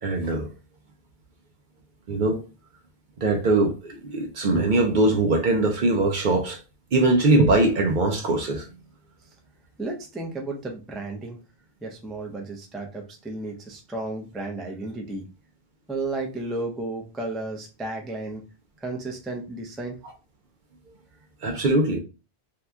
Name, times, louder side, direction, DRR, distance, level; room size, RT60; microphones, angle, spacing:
voice 1, 0.0-0.5 2.1-2.4 3.2-6.6 6.9-8.7 21.4-22.0, right 2 dB, 55° right, 0.6 m, -21 dB
voice 2, 9.8-11.4 11.8-15.2 15.9-18.4 18.8-20.0, right 2 dB, ahead, 0.3 m, -33 dB
2.8 x 2.2 x 3.4 m
omnidirectional pair, 1.1 m